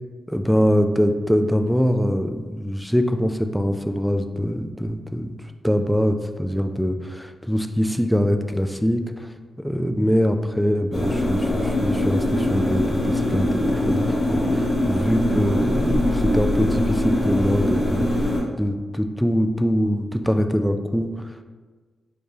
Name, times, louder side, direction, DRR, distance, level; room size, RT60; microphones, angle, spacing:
voice 1, 0.3-5.3 5.6-9.3 9.6-18.3 18.6-21.3, equal, ahead, 7 dB, 0.3 m, -23 dB
sound 1, 10.9-18.4, left 1 dB, 50° left, 1.0 m, -22 dB
4.7 x 2.3 x 2.7 m, 1.4 s
cardioid pair, 65°, 0 cm